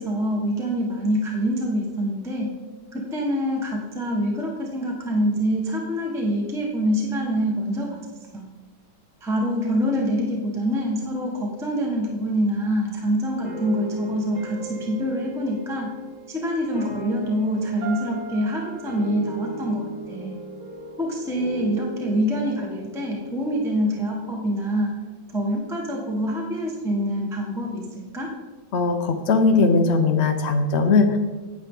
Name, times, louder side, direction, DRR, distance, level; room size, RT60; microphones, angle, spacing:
voice 1, 0.0-2.5 2.9-8.0 8.3-8.5 9.2-15.9 16.3-20.3 21.0-24.9 25.3-27.8 28.1-28.3, equal, ahead, -2 dB, 1.0 m, -25 dB
sound 1, 13.4-24.5, right 1 dB, 50° right, 4.3 m, -37 dB
voice 2, 28.7-31.2, left 4 dB, 55° left, 6 dB, 0.7 m, -19 dB
9.5 x 8.8 x 3.7 m, 1.3 s
omnidirectional pair, 2.2 m